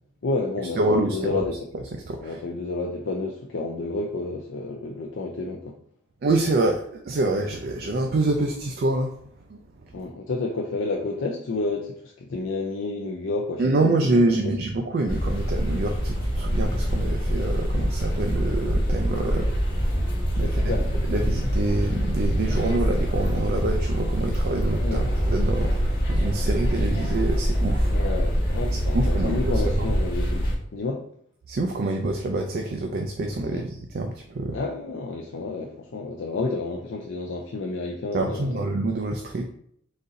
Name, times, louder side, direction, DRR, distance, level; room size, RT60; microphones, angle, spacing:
voice 1, 0.2-1.6 2.2-5.8 9.9-14.5 20.4-20.9 24.8-25.1 27.9-30.5 30.7-31.0 33.5-33.6 34.5-38.7, left 3 dB, 70° left, 0 dB, 0.5 m, -30 dB
voice 2, 0.8-1.4 1.9-2.4 6.2-9.2 9.5-9.9 13.6-19.5 19.9-20.1 20.4-20.7 21.1-27.9 28.9-29.9 31.5-34.6 38.1-39.5, right 2 dB, 50° right, 3 dB, 0.4 m, -26 dB
sound 1, 15.1-30.5, equal, 50° left, 1.3 m, -24 dB
4.0 x 2.6 x 3.9 m, 0.66 s
head